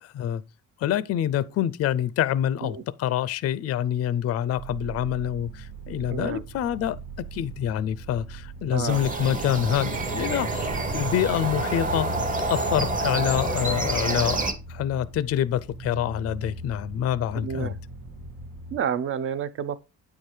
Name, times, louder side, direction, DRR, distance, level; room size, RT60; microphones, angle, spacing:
voice 1, 0.8-7.0 7.3-10.7 10.9-12.1 12.5-14.4 14.7-17.8, left 11 dB, 45° left, 0.4 m, -26 dB
sound 1, 4.6-18.8, right 1 dB, 80° right, 1.6 m, -40 dB
voice 2, 6.1-6.4 8.7-9.0 17.3-17.8 18.7-19.8, right 8 dB, 40° right, 0.5 m, -30 dB
sound 2, 8.9-14.5, right 2 dB, 25° right, 0.9 m, -28 dB
8.7 x 4.5 x 4.8 m
cardioid pair, 180°, 34 cm